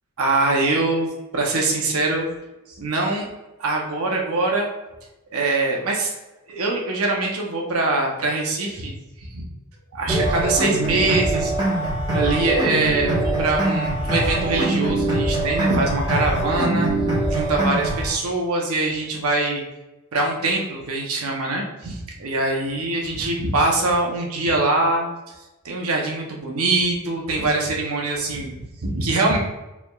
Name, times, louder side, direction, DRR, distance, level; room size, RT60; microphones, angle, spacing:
voice 1, 0.2-2.3 2.7-3.3 3.6-4.7 5.3-6.1 6.5-9.4 9.9-11.5 12.1-16.9 17.3-19.6 20.1-25.3 25.6-29.4, right 2 dB, 80° right, 0 dB, 0.8 m, -23 dB
sound 1, 10.1-18.1, right 2 dB, 20° right, 1.2 m, -23 dB
4.5 x 3.5 x 2.3 m, 1.0 s
head